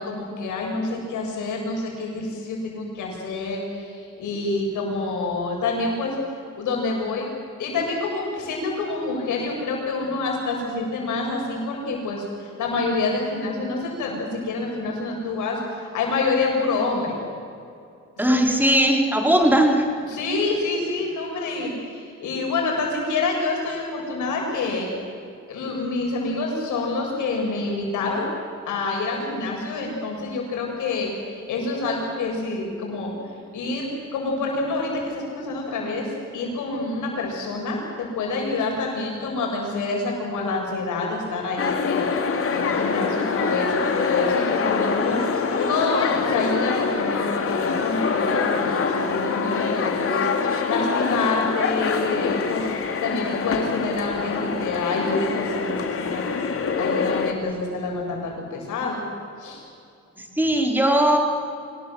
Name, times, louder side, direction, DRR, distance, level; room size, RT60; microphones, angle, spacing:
voice 1, 0.0-6.2 6.6-7.3 7.6-17.1 20.1-24.9 25.5-28.3 28.6-45.2 45.6-52.7 53.0-56.2 56.8-59.0 59.4-59.6, left 3 dB, 80° left, -1 dB, 7.8 m, -27 dB
voice 2, 18.2-19.9 60.2-61.2, right 1 dB, 5° right, 2 dB, 4.3 m, -19 dB
sound 1, 41.6-57.3, left 5 dB, 50° left, 2.7 m, -25 dB
25.5 x 19.5 x 7.8 m, 2.4 s
cardioid pair, 90°, 30 cm